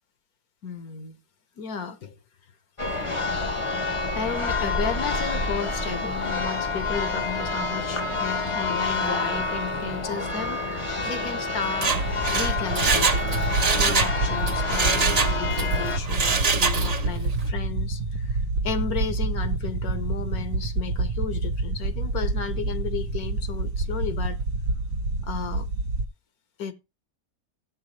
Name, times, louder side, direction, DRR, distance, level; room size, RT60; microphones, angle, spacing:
voice 1, 0.6-1.2 1.6-2.2 4.1-12.0 12.3-13.3 13.8-24.4 25.2-25.7 26.6-26.7, left 6 dB, 70° left, 1.4 m, -34 dB
Church bell, 2.8-16.0, left 3 dB, 25° left, 0.7 m, -28 dB
Mechanisms, 11.7-14.2 14.5-15.7 16.0-17.1 17.4-17.5, right 4 dB, 40° right, 0.6 m, -24 dB
sound 1, 11.9-26.0, right 2 dB, 80° right, 1.4 m, -28 dB
14.0 x 7.7 x 3.1 m
omnidirectional pair, 1.7 m